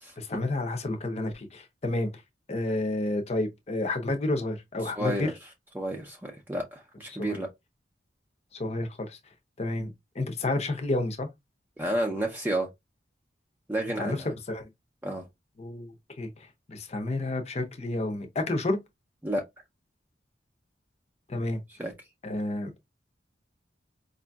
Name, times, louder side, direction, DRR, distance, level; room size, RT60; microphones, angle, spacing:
voice 1, 0.2-2.1 2.5-5.3 7.2-7.4 8.6-9.2 9.6-9.9 10.2-11.3 14.0-14.7 15.6-16.3 16.7-18.8 21.3-21.6 22.2-22.7, left 2 dB, 35° left, 0.7 m, -30 dB
voice 2, 4.8-5.3 5.7-7.5 11.8-12.7 13.7-14.3 15.0-15.2 19.2-19.4 21.8-21.9, right 1 dB, 10° right, 0.6 m, -31 dB
4.8 x 2.6 x 2.3 m
head